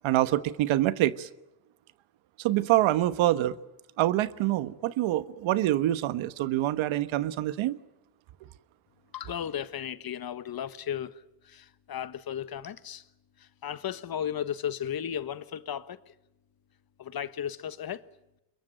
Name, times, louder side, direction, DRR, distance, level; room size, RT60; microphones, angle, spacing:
voice 1, 0.0-1.3 2.4-3.6 4.0-7.8, right 14 dB, 70° right, 1.3 m, -25 dB
voice 2, 9.1-13.0 13.4-16.1 17.0-18.0, left 9 dB, 45° left, 1.4 m, -35 dB
23.5 x 22.0 x 9.1 m
supercardioid pair, 70°, 48 cm